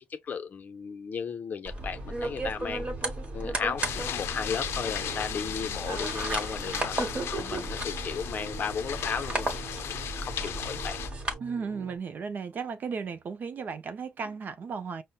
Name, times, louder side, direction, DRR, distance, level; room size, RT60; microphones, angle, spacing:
voice 1, 0.1-2.9 3.3-7.0 7.3-9.6 9.9-11.0, left 6 dB, 45° left, 0.6 m, -35 dB
sound 1, 1.6-11.3, right 2 dB, 30° right, 1.1 m, -35 dB
sound 2, 1.8-12.0, right 6 dB, 85° right, 0.6 m, -46 dB
sound 3, 3.8-11.1, left 9 dB, 85° left, 0.5 m, -36 dB
voice 2, 11.4-15.0, right 5 dB, 45° right, 0.5 m, -35 dB
5.5 x 2.1 x 2.3 m
cardioid pair, 135°, 4 cm